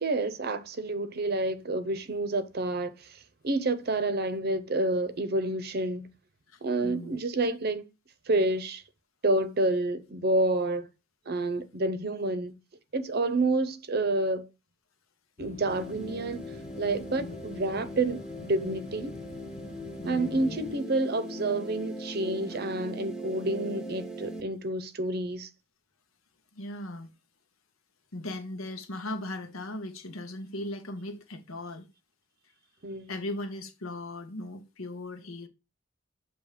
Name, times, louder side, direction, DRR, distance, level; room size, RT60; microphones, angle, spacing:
voice 1, 0.0-3.1 3.4-6.1 6.6-7.8 8.3-8.8 9.2-10.9 11.3-12.5 12.9-14.5 15.4-16.4 16.8-19.1 20.0-25.5 32.8-33.1, right 2 dB, 50° right, 0.7 m, -29 dB
voice 2, 6.5-7.2 17.1-17.3 20.0-20.6 26.5-27.1 28.1-31.9 33.1-35.5, left 1 dB, 90° left, 1.1 m, -38 dB
sound 1, 15.4-20.8, left 4 dB, 35° left, 0.5 m, -44 dB
sound 2, 15.7-24.4, right 1 dB, 5° right, 0.7 m, -40 dB
7.1 x 2.9 x 4.9 m
head